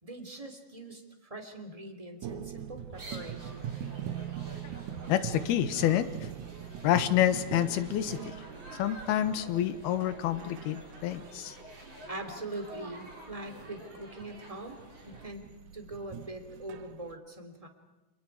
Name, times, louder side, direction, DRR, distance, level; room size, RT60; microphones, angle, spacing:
voice 1, 0.0-3.7 11.7-14.8 15.0-17.7, right 1 dB, 10° right, 5 dB, 2.2 m, -43 dB
sound 1, 2.2-17.2, right 10 dB, 75° right, 1.9 m, -43 dB
sound 2, 2.9-15.3, right 1 dB, 30° right, 4.8 m, -49 dB
voice 2, 5.1-6.1 6.8-8.3 8.8-11.5, left 11 dB, 85° left, 11 dB, 3.2 m, -28 dB
29.5 x 28.5 x 4.8 m, 1.1 s
omnidirectional pair, 4.4 m